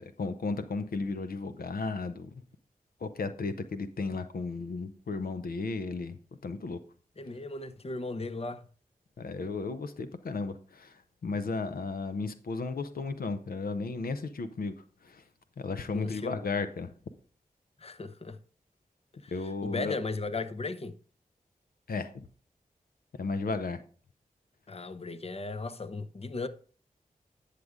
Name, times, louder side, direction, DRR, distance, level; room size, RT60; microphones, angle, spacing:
voice 1, 0.0-2.4 3.0-6.2 6.4-6.8 9.2-14.7 15.0-15.2 15.6-16.9 19.3-20.0 21.9-22.3 23.2-23.8, left 4 dB, 80° left, 0.7 m, -34 dB
voice 2, 7.2-8.6 15.9-16.3 17.8-18.4 19.2-20.9 24.7-26.5, left 3 dB, 40° left, 0.7 m, -36 dB
9.2 x 6.6 x 3.6 m
cardioid pair, 40°, 15 cm